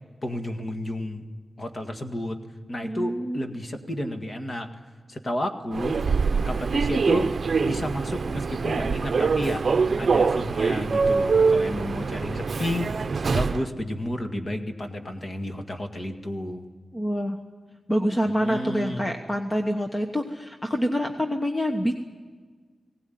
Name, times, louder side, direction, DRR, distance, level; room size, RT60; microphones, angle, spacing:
voice 1, 0.2-1.2 1.6-2.4 2.7-4.7 5.1-6.0 6.4-7.3 7.6-9.7 10.0-12.9 13.3-16.7 18.3-19.0, left 1 dB, 35° left, 5 dB, 1.8 m, -31 dB
voice 2, 2.8-3.4 16.9-17.4 17.9-21.9, equal, 15° left, 4 dB, 1.1 m, -26 dB
Human voice / Subway metro underground, 5.7-13.7, right 4 dB, 50° right, 0.7 m, -24 dB
20.0 x 18.0 x 9.4 m, 1.5 s
wide cardioid pair, 155°, 0 cm